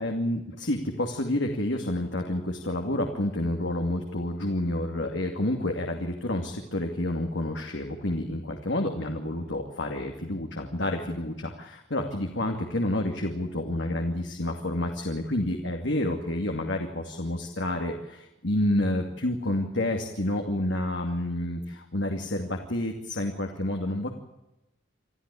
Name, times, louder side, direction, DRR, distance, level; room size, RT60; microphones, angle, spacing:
voice 1, 0.0-24.1, left 1 dB, 75° left, 3 dB, 2.6 m, -29 dB
27.0 x 14.0 x 8.5 m, 0.93 s
head